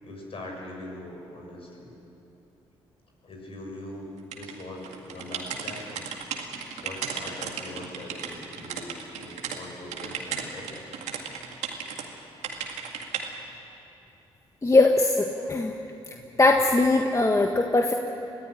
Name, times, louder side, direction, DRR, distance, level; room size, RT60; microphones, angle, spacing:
voice 1, 0.0-2.0 3.2-6.1 6.7-10.8 11.3-11.4, left 1 dB, 55° left, 0 dB, 6.8 m, -41 dB
sound 1, 4.3-9.6 9.9-12.0 12.4-13.3, right 7 dB, 80° right, 2.1 m, -35 dB
voice 2, 14.6-15.8 16.4-17.9, left 2 dB, 25° left, 3 dB, 1.5 m, -20 dB
22.0 x 14.5 x 10.0 m, 2.9 s
supercardioid pair, 55°, 12 cm